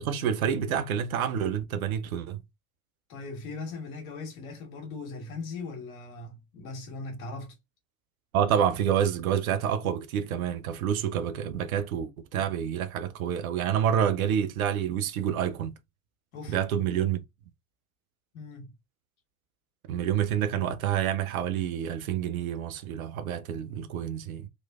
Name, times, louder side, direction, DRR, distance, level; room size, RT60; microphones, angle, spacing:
voice 1, 0.0-2.4 8.3-15.7 16.5-17.2 19.9-24.5, right 9 dB, 75° right, 0.6 m, -28 dB
voice 2, 3.1-7.5 9.8-9.9 16.3-16.6 18.3-18.7, left 3 dB, 75° left, 1.5 m, -39 dB
3.0 x 3.0 x 2.3 m
figure-of-eight pair, 60°, 42 cm